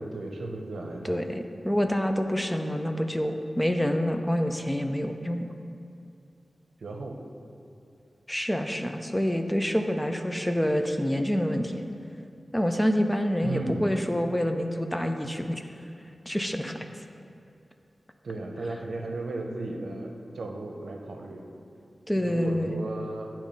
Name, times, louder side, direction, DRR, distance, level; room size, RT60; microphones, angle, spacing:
voice 1, 0.0-1.3 6.8-7.2 13.4-14.0 18.2-21.5 22.1-23.3, right 2 dB, 90° right, 2 dB, 0.6 m, -35 dB
voice 2, 1.0-5.5 8.3-11.8 12.5-15.6 16.3-16.8 22.1-22.8, equal, 10° left, 6 dB, 0.4 m, -27 dB
8.6 x 3.0 x 5.2 m, 2.6 s
wide cardioid pair, 90°, 0 cm